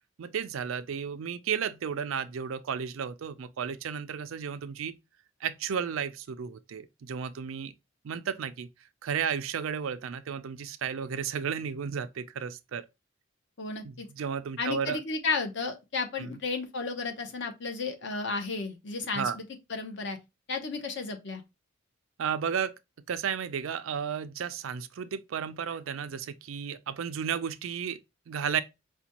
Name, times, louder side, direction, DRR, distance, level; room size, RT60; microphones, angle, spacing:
voice 1, 0.2-5.0 5.4-7.7 8.0-8.7 9.0-12.8 13.8-15.0 16.2-16.4 19.1-19.4 22.2-22.7 23.1-28.0 28.3-28.6, right 7 dB, 75° right, 0.4 m, -33 dB
voice 2, 13.6-14.1 14.6-19.4 19.7-20.2 20.5-21.4, left 4 dB, 55° left, 0.8 m, -33 dB
5.0 x 2.2 x 2.8 m
head